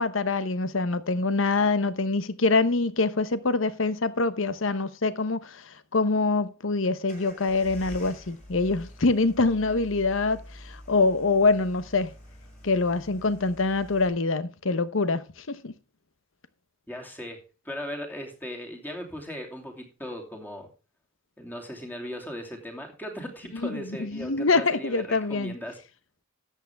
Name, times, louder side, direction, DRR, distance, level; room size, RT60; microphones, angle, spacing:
voice 1, 0.0-5.6 5.9-12.1 12.6-15.7 23.6-25.5, left 3 dB, 70° left, 0.9 m, -25 dB
sound 1, 7.1-14.1, left 1 dB, 40° left, 6.8 m, -46 dB
voice 2, 16.9-20.7 21.4-25.8, equal, 10° left, 2.8 m, -38 dB
13.0 x 8.4 x 3.4 m
head